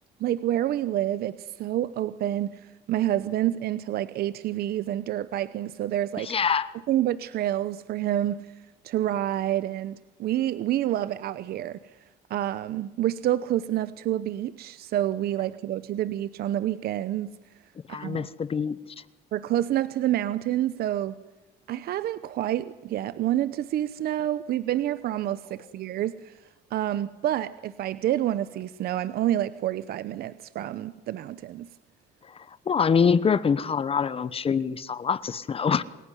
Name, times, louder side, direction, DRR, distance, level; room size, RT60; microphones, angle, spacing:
voice 1, 0.2-6.4 6.9-8.5 8.8-11.8 12.3-17.3 17.9-18.3 19.3-21.1 21.7-26.3 26.7-31.7, right 12 dB, 65° right, 15 dB, 0.9 m, -28 dB
voice 2, 6.2-6.7 17.9-18.7 32.7-35.8, left 6 dB, 35° left, 16 dB, 1.0 m, -24 dB
28.0 x 16.5 x 9.9 m, 1.1 s
cardioid pair, 110°, 17 cm